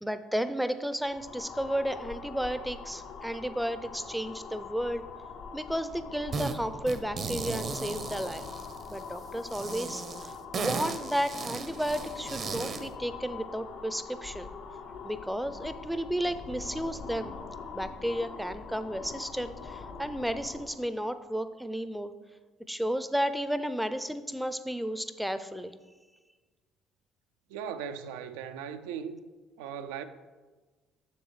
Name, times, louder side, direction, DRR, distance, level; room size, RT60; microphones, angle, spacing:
voice 1, 0.0-5.0 5.5-8.5 8.9-14.5 15.0-17.4 17.7-22.1 22.7-25.7, equal, 5° right, 0.5 m, -33 dB
sound 1, 1.0-20.8, left 5 dB, 70° left, 0.7 m, -43 dB
sound 2, 6.3-6.6 6.9-9.0 9.5-12.9, right 4 dB, 45° right, 0.7 m, -36 dB
voice 2, 27.5-29.2 29.6-30.0, right 8 dB, 80° right, 0.4 m, -38 dB
7.1 x 6.5 x 3.2 m
hypercardioid pair, 65°, 0 cm